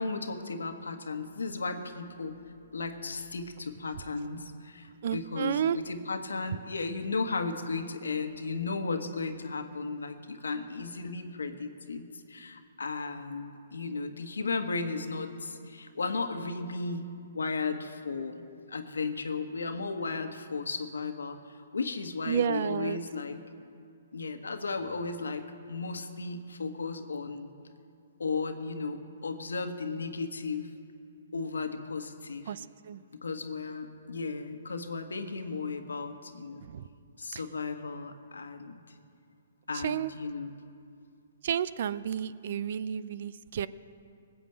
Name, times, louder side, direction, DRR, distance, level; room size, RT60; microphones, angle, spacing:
voice 1, 0.0-2.4 2.7-23.4 24.1-27.5 28.2-30.7 31.3-32.5 33.2-36.6 37.2-38.8 39.7-40.5, left 4 dB, 80° left, 7 dB, 1.4 m, -35 dB
voice 2, 5.0-5.8 22.2-23.0 32.5-33.1 36.6-36.8 37.3-37.4 39.7-40.1 41.4-43.7, right 8 dB, 55° right, 17 dB, 0.5 m, -31 dB
19.5 x 7.9 x 7.9 m, 2.4 s
hypercardioid pair, 130°, 0 cm